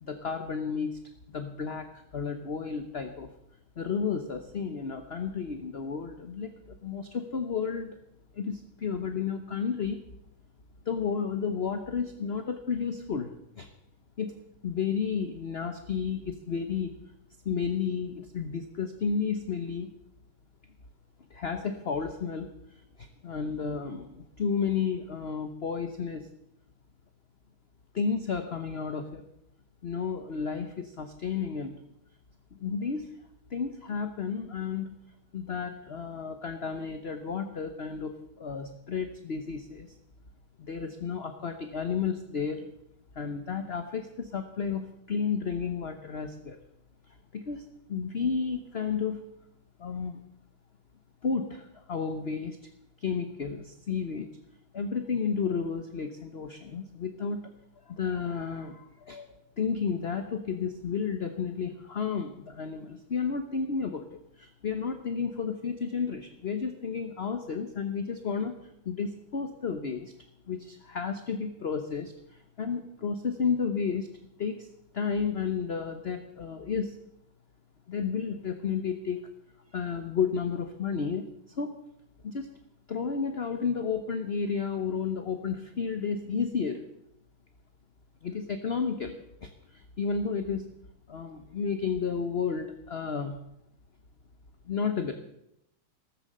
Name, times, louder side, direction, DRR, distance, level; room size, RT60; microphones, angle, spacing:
voice 1, 0.0-1.0 1.3-3.3 3.8-8.0 8.3-10.0 10.8-13.7 14.2-14.3 14.6-16.9 17.4-19.9 21.3-26.3 27.9-29.2 29.8-31.8 32.5-33.1 33.5-35.0 35.3-39.9 40.6-42.7 43.1-46.6 47.1-49.3 49.8-50.2 51.2-52.6 53.0-54.3 54.7-57.5 57.9-70.1 70.5-74.1 74.4-74.7 74.9-77.0 77.9-79.2 79.7-81.8 82.2-82.5 82.9-86.8 88.2-90.7 91.1-93.4 94.6-95.2, left 6 dB, 45° left, 7 dB, 0.9 m, -32 dB
14.0 x 14.0 x 6.7 m, 0.79 s
omnidirectional pair, 2.3 m